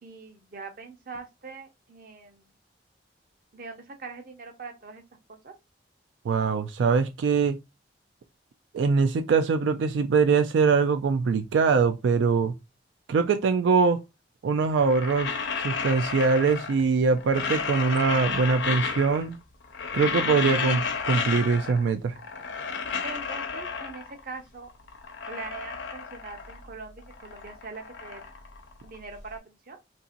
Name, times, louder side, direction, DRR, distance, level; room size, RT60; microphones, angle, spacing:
voice 1, 0.0-2.5 3.5-5.0 5.3-5.5 23.0-24.7 25.3-28.2 28.8-29.8, right 4 dB, 50° right, 0.7 m, -42 dB
voice 2, 6.2-7.6 8.7-12.5 13.1-14.0 14.4-19.4 19.9-22.1, right 5 dB, 90° right, 0.3 m, -23 dB
sound 1, 14.7-16.9 17.2-19.4 19.6-21.9 22.2-24.2 24.7-26.7 27.0-29.2, left 5 dB, 75° left, 0.6 m, -32 dB
2.8 x 2.6 x 2.5 m
head